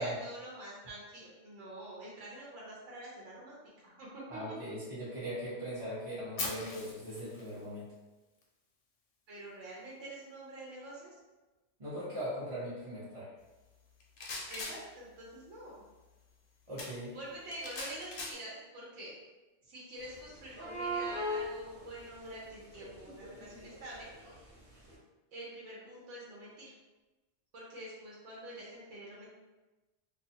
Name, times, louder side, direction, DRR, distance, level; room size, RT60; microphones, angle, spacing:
voice 1, 0.0-4.5 9.3-11.1 14.5-15.8 17.1-19.1 19.7-24.5 25.3-26.7 27.5-29.3, right 1 dB, 85° right, -5 dB, 1.0 m, -46 dB
voice 2, 4.3-7.9 11.8-13.3 16.7-17.1, equal, 35° right, -9 dB, 0.6 m, -39 dB
Fire, 6.4-8.4, left 3 dB, 85° left, 1.0 m, -41 dB
sound 1, 14.0-14.8 16.8-16.9 17.5-18.3, left 3 dB, 60° left, 0.6 m, -41 dB
sound 2, 20.1-20.2 20.4-22.3 22.6-24.5 24.9-25.0, equal, 55° right, 0.9 m, -39 dB
2.4 x 2.3 x 2.7 m, 1.1 s
omnidirectional pair, 1.2 m